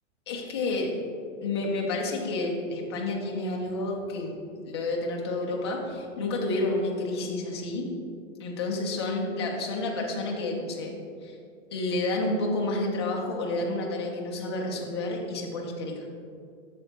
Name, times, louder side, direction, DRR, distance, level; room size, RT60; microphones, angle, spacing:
voice 1, 0.3-0.9 1.4-4.4 4.7-7.9 8.4-10.9 11.2-11.3 11.7-16.1, left 2 dB, 20° left, -1 dB, 0.5 m, -30 dB
7.5 x 6.6 x 3.0 m, 2.4 s
supercardioid pair, 175°, 38 cm